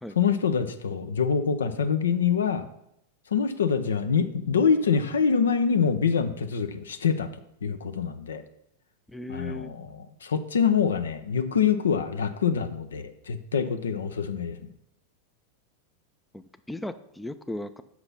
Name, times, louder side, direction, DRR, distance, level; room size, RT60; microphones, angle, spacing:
voice 1, 0.2-2.7 3.3-7.3 7.6-8.4 9.3-14.6, left 6 dB, 65° left, 11 dB, 0.7 m, -25 dB
voice 2, 9.1-9.7 16.3-17.8, left 1 dB, 5° left, 11 dB, 0.4 m, -37 dB
7.9 x 5.9 x 5.6 m, 0.77 s
figure-of-eight pair, 90°, 0 cm